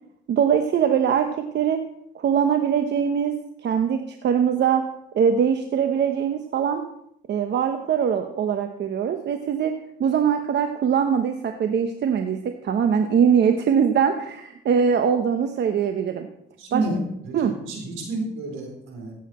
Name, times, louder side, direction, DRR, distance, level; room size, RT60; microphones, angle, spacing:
voice 1, 0.3-1.8 2.1-3.4 3.6-4.9 5.1-6.8 7.3-9.7 10.0-16.3 16.7-16.9 17.3-17.5, right 7 dB, 60° right, 6 dB, 0.9 m, -22 dB
voice 2, 16.6-17.0 17.3-19.1, right 2 dB, 85° right, 1 dB, 4.1 m, -30 dB
16.0 x 8.1 x 4.3 m, 0.77 s
cardioid pair, 90°, 20 cm